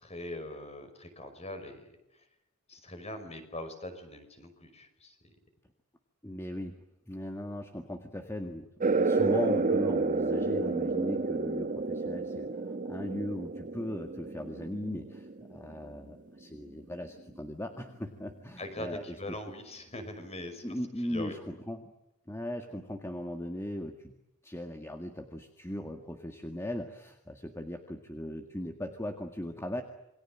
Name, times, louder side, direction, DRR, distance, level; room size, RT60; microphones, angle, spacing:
voice 1, 0.0-1.9 2.7-5.3 18.6-20.7 21.0-21.4, left 1 dB, 30° left, 8 dB, 5.5 m, -42 dB
voice 2, 6.2-6.8 7.1-19.4 20.6-21.9 22.3-24.2 24.4-29.8, left 1 dB, 10° left, 5 dB, 1.9 m, -38 dB
sound 1, 8.8-16.0, right 3 dB, 40° right, 1.4 m, -30 dB
28.0 x 23.0 x 7.6 m, 0.90 s
head